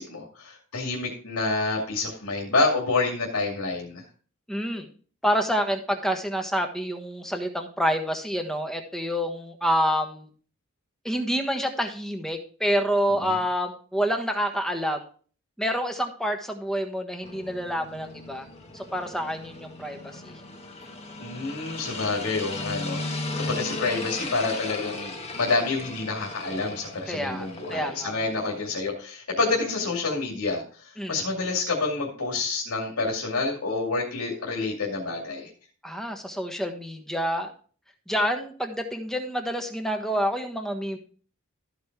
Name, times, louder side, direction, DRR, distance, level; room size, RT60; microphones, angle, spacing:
voice 1, 0.0-4.0 13.2-13.4 21.2-35.5, left 3 dB, 80° left, -1 dB, 2.4 m, -28 dB
voice 2, 4.5-4.9 5.2-10.3 11.0-15.0 15.6-18.5 18.7-20.3 27.1-28.5 31.0-31.2 35.8-37.5 38.1-41.0, equal, ahead, 4 dB, 1.3 m, -28 dB
sound 1, 17.2-28.8, left 2 dB, 30° left, 1.4 m, -37 dB
13.5 x 5.2 x 4.6 m, 0.42 s
head